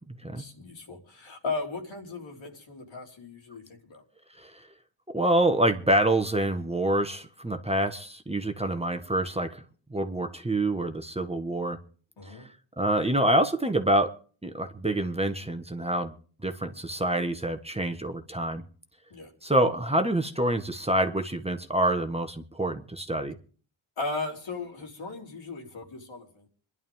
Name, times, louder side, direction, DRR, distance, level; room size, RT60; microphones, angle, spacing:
voice 1, 0.4-4.0 12.2-12.5 19.1-19.3 24.0-26.5, left 3 dB, 75° left, 4.0 m, -37 dB
voice 2, 5.1-9.6 9.9-11.8 12.3-12.4 12.8-14.1 14.4-16.1 16.4-18.6 19.4-23.4, right 1 dB, 15° right, 1.4 m, -26 dB
26.5 x 11.0 x 3.6 m
cardioid pair, 75°, 47 cm